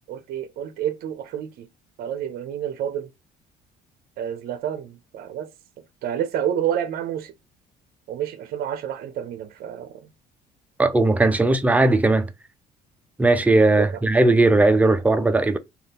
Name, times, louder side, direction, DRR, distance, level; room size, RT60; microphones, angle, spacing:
voice 1, 0.1-1.7 2.0-3.1 4.2-5.5 6.0-7.3 8.1-10.1 11.4-11.5 13.8-14.0, right 10 dB, 65° right, 0.5 m, -29 dB
voice 2, 10.8-12.3 13.2-15.6, right 2 dB, 10° right, 0.4 m, -18 dB
2.6 x 2.4 x 3.4 m
cardioid pair, 110°, 17 cm